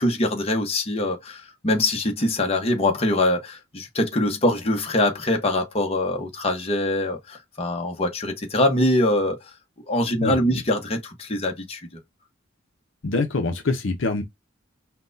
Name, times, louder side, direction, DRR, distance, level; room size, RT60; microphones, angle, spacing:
voice 1, 0.0-9.5 9.9-12.0, left 1 dB, 30° left, 0.9 m, -23 dB
voice 2, 10.2-10.6 13.0-14.2, left 3 dB, 65° left, 0.7 m, -25 dB
5.8 x 2.2 x 2.6 m
head